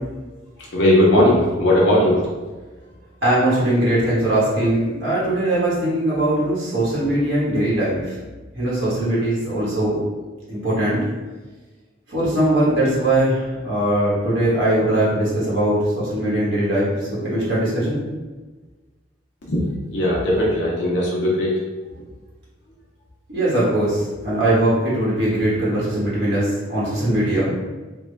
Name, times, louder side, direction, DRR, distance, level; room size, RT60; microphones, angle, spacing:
voice 1, 0.7-2.2 19.5-19.6 19.9-21.5, left 1 dB, 60° left, -5 dB, 0.6 m, -17 dB
voice 2, 3.2-8.2 8.5-10.0 10.5-11.0 12.1-18.0 23.3-27.5, right 1 dB, 70° right, -8 dB, 1.2 m, -20 dB
3.6 x 2.2 x 3.3 m, 1.3 s
head